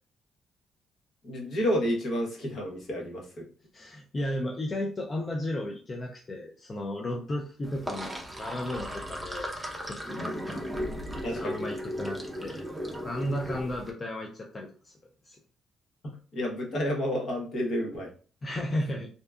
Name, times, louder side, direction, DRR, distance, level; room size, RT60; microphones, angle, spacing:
voice 1, 1.2-3.4 11.2-11.6 16.0-18.1, equal, 60° left, -2 dB, 1.0 m, -30 dB
voice 2, 3.7-9.5 9.8-10.7 11.2-12.7 13.0-14.9 15.2-15.4 18.4-19.1, left 1 dB, 35° left, 0 dB, 0.4 m, -34 dB
Sink (filling or washing), 7.6-13.9, equal, 10° right, 0.6 m, -36 dB
2.7 x 2.2 x 2.2 m, 0.40 s
cardioid pair, 90°, 0 cm